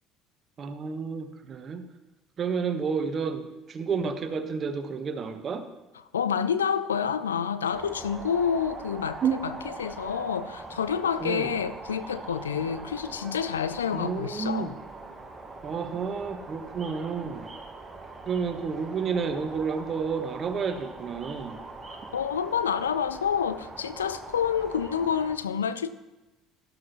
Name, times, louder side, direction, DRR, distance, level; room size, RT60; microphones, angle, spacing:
voice 1, 0.6-1.8 2.4-5.7 9.2-9.4 11.2-11.5 13.9-14.7 15.6-17.5 18.3-21.6, right 6 dB, 40° right, 9 dB, 1.1 m, -30 dB
voice 2, 6.1-14.7 21.9-25.9, left 7 dB, 80° left, 14 dB, 0.4 m, -28 dB
sound 1, 7.7-25.4, right 3 dB, 20° right, 1.6 m, -42 dB
12.5 x 12.0 x 3.1 m, 1.1 s
figure-of-eight pair, 60°, 0 cm